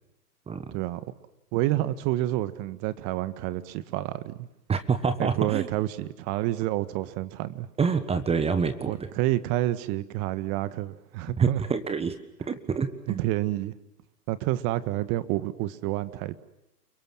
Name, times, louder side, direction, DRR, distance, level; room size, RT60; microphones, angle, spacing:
voice 1, 0.7-1.0 1.5-4.5 5.2-7.7 8.9-11.6 13.1-13.7 14.3-16.4, right 15 dB, 35° right, 15 dB, 1.7 m, -29 dB
voice 2, 4.7-5.7 7.8-9.1 11.4-12.2 12.5-13.2, right 5 dB, 10° right, 12 dB, 1.5 m, -26 dB
29.5 x 24.0 x 7.4 m, 0.87 s
hypercardioid pair, 120°, 49 cm